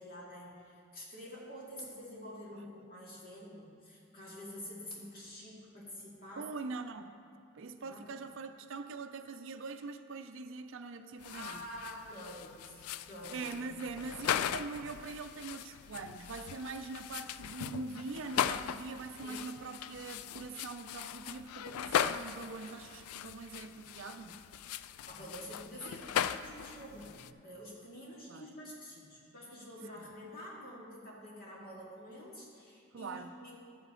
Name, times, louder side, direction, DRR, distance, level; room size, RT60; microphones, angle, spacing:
voice 1, 0.0-6.5 7.8-8.1 11.3-13.5 19.2-19.5 25.1-33.5, equal, 45° left, -5 dB, 2.2 m, -48 dB
voice 2, 6.4-7.2 7.5-11.6 13.3-24.4 28.3-28.4 32.9-33.3, right 4 dB, 60° right, 8 dB, 0.5 m, -43 dB
sound 1, 11.2-27.3, left 9 dB, 85° left, 0.3 m, -38 dB
12.0 x 8.2 x 3.7 m, 2.4 s
head